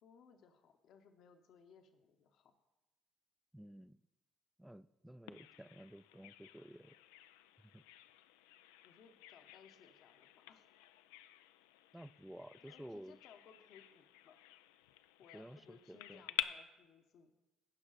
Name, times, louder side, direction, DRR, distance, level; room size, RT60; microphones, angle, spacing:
voice 1, 0.0-2.5 8.8-10.7 12.6-14.4 15.2-17.3, left 6 dB, 65° left, 7 dB, 1.0 m, -63 dB
voice 2, 3.5-4.0 4.6-6.9 7.7-7.8 11.9-13.2 15.3-16.2, right 1 dB, 5° right, 16 dB, 0.4 m, -53 dB
Bird vocalization bird call bird song, 5.3-16.4, left 15 dB, 85° left, 0.3 m, -49 dB
15.5 x 5.4 x 4.0 m, 1.0 s
hypercardioid pair, 55°, 0 cm